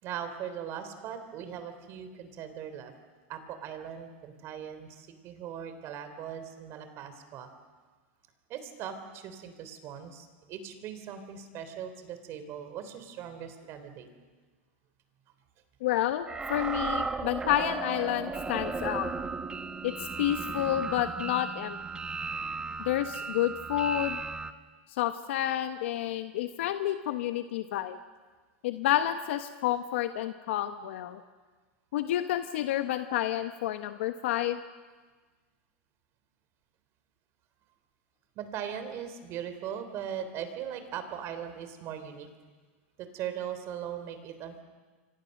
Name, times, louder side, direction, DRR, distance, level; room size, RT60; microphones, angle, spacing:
voice 1, 0.0-2.9 3.3-7.5 8.5-14.1 38.3-42.3 43.0-44.6, right 9 dB, 40° right, 9 dB, 3.5 m, -39 dB
voice 2, 15.8-19.1 19.8-21.8 22.8-24.2 24.9-28.0 28.6-31.2 31.9-34.6, left 12 dB, 75° left, 9 dB, 1.1 m, -30 dB
sound 1, 16.3-24.5, right 4 dB, 15° right, 1.1 m, -35 dB
27.5 x 24.5 x 6.6 m, 1.4 s
supercardioid pair, 135°, 7 cm